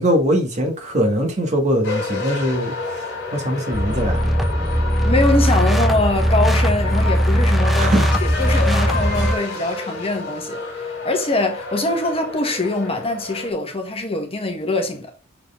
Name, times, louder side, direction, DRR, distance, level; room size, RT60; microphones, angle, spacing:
voice 1, 0.0-4.3 7.8-8.1, equal, 35° right, 1.8 m, -21 dB
sound 1, 1.8-13.5, left 3 dB, 55° left, 2.5 m, -30 dB
sound 2, 3.7-9.4, equal, ahead, 0.7 m, -19 dB
voice 2, 5.0-15.1, left 2 dB, 30° left, 1.4 m, -23 dB
6.5 x 4.5 x 3.7 m
head